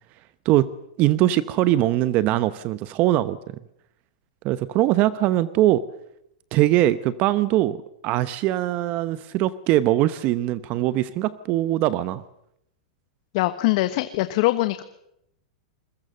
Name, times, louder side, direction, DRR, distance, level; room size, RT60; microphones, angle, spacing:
voice 1, 1.0-3.5 4.4-5.8 6.5-12.2, right 14 dB, 45° right, 15 dB, 0.9 m, -21 dB
voice 2, 13.3-14.8, left 18 dB, 60° left, 11 dB, 1.2 m, -22 dB
25.5 x 21.5 x 6.7 m, 0.78 s
hypercardioid pair, 130°, 4 cm